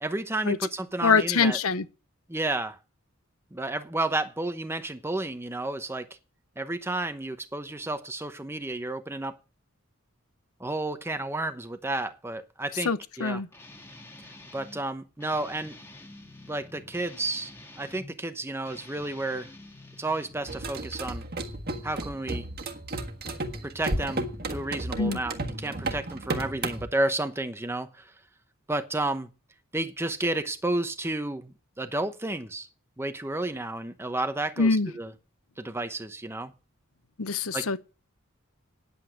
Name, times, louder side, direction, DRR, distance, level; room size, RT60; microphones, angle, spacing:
voice 1, 0.0-1.6 2.3-2.8 3.5-6.1 6.6-9.4 10.6-12.9 13.2-13.4 14.5-15.8 16.5-19.5 20.0-21.2 21.8-22.5 23.6-28.1 28.7-29.3 29.7-32.7 33.0-35.1 35.6-36.5 37.5-37.7, right 2 dB, 10° right, 0.9 m, -31 dB
voice 2, 1.0-1.8 12.8-13.5 25.0-25.2 34.6-34.9 37.2-37.8, left 4 dB, 85° left, 0.9 m, -24 dB
Guitar, 13.5-14.8 15.2-18.1 18.6-20.8, left 2 dB, 10° left, 1.8 m, -48 dB
sound 1, 20.5-26.9, right 2 dB, 45° right, 1.6 m, -33 dB
9.8 x 8.3 x 7.5 m
head